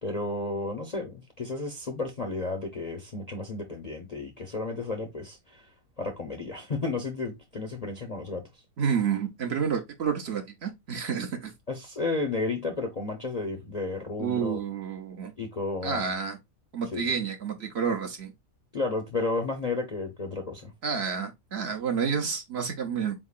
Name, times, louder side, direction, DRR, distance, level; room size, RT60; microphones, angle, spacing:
voice 1, 0.0-5.7 6.0-8.4 11.7-14.6 15.4-16.2 16.9-17.1 18.7-20.7, left 3 dB, 45° left, 0.5 m, -32 dB
voice 2, 8.8-11.5 14.2-15.3 15.8-16.4 16.7-18.3 20.8-23.1, right 6 dB, 55° right, 0.8 m, -29 dB
4.4 x 3.6 x 2.3 m
omnidirectional pair, 1.5 m